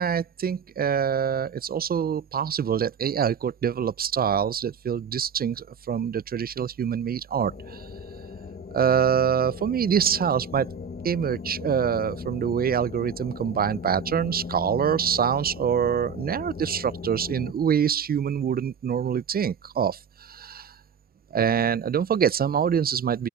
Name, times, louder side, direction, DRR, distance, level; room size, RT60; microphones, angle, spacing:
voice 1, 0.0-7.9 8.7-10.7 11.0-20.7 21.3-23.3, right 8 dB, 30° right, 0.5 m, -25 dB
sound 1, 7.3-17.5, left 5 dB, 30° left, 1.5 m, -38 dB
open air
cardioid pair, 90°, 30 cm